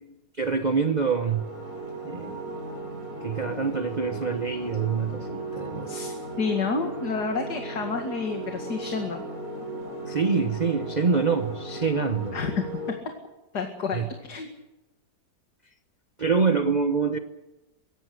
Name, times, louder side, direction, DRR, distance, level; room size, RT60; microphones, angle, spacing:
voice 1, 0.4-1.5 2.0-2.4 3.2-5.9 10.0-12.4 13.9-14.1 16.2-17.2, right 5 dB, 30° right, 1.0 m, -25 dB
sound 1, 1.0-12.9, right 2 dB, 55° right, 5.8 m, -37 dB
voice 2, 5.9-9.2 12.3-12.6 13.5-14.5, left 4 dB, 75° left, 2.7 m, -29 dB
23.5 x 18.0 x 7.9 m
omnidirectional pair, 1.8 m